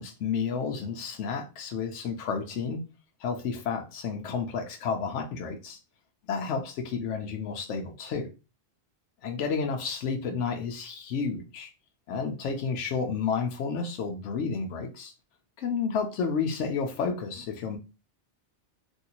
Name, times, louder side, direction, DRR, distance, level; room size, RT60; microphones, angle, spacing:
voice 1, 0.0-2.8 3.2-5.8 6.3-8.3 9.2-11.7 12.1-15.1 15.6-17.8, left 5 dB, 85° left, 0.9 m, -31 dB
3.1 x 2.6 x 2.8 m
omnidirectional pair, 1.2 m